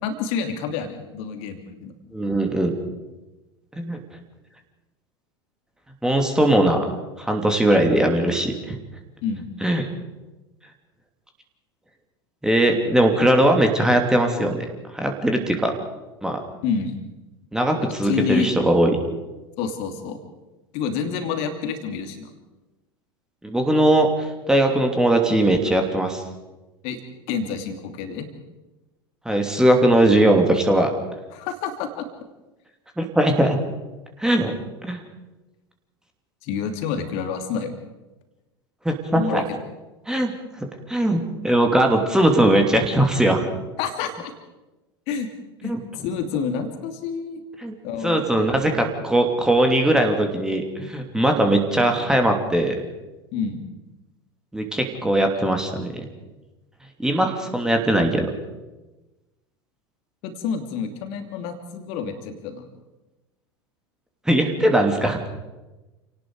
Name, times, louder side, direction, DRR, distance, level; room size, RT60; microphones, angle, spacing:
voice 1, 0.0-1.9 9.2-9.5 16.6-17.0 17.8-18.5 19.6-20.2 20.7-22.3 26.8-27.0 27.3-28.3 31.3-32.1 36.4-37.7 39.1-39.6 43.8-44.3 45.1-45.3 45.6-45.7 46.0-47.4 47.8-48.5 53.3-53.7 60.2-62.6, left 6 dB, 50° left, 6 dB, 3.0 m, -28 dB
voice 2, 2.1-2.7 3.7-4.0 6.0-6.8 7.2-8.8 9.6-9.9 12.4-14.7 14.9-15.8 16.2-16.4 17.5-19.0 23.4-26.2 29.2-30.9 33.0-33.6 34.2-34.5 34.8-35.0 38.8-39.4 40.1-40.3 40.9-43.5 45.6-45.8 47.6-47.7 48.0-52.8 54.5-56.0 57.0-58.3 64.3-65.2, right 1 dB, 5° right, 3 dB, 2.9 m, -20 dB
29.0 x 18.5 x 5.0 m, 1.1 s
figure-of-eight pair, 80°, 13 cm